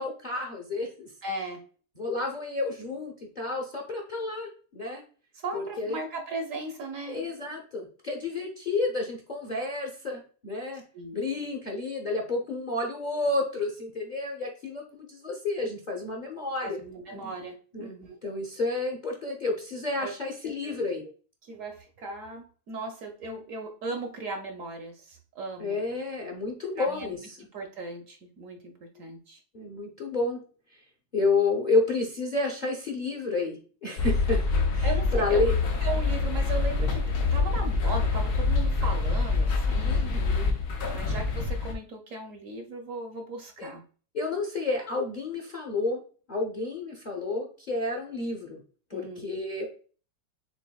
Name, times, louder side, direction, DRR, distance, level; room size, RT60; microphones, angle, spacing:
voice 1, 0.0-1.1 2.0-5.0 5.5-6.0 7.1-10.8 11.1-16.8 17.1-17.3 17.7-17.9 18.2-21.0 25.6-27.2 29.5-30.4 30.7-30.8 31.1-34.4 34.7-35.6 39.8-40.5 43.6-43.7 44.1-46.0 46.3-48.6 48.9-49.7, left 3 dB, 35° left, 1 dB, 0.7 m, -30 dB
voice 2, 1.2-1.6 5.3-7.3 10.9-11.2 16.6-18.2 20.0-20.2 20.4-20.8 21.4-25.8 26.8-29.4 34.8-35.5 35.8-37.0 37.3-40.1 40.9-43.8 48.9-49.2, right 3 dB, 60° right, 4 dB, 1.0 m, -37 dB
sound 1, 34.0-41.7, left 4 dB, 75° left, 1.3 m, -26 dB
7.0 x 2.6 x 2.3 m, 0.39 s
omnidirectional pair, 1.7 m